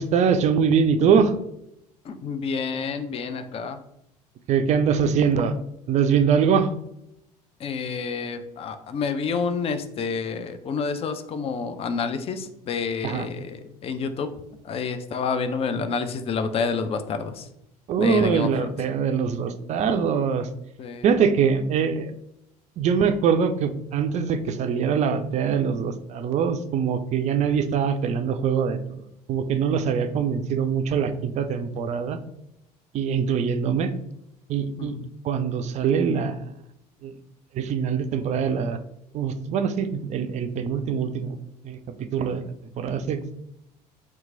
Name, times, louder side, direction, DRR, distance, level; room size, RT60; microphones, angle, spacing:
voice 1, 0.0-1.3 4.5-5.5 5.9-6.7 13.0-13.3 17.9-20.5 21.0-22.1 22.8-28.8 29.3-32.2 32.9-33.9 34.5-34.9 35.2-36.4 37.0-37.1 37.5-38.8 39.1-41.4 41.6-42.5 42.8-43.4, right 6 dB, 35° right, 9 dB, 0.4 m, -23 dB
voice 2, 2.1-3.8 7.6-14.3 14.6-17.5 18.0-18.7 20.8-21.0 34.8-35.0, left 5 dB, 30° left, 9 dB, 0.4 m, -29 dB
2.9 x 2.3 x 3.7 m, 0.80 s
figure-of-eight pair, 65°, 20 cm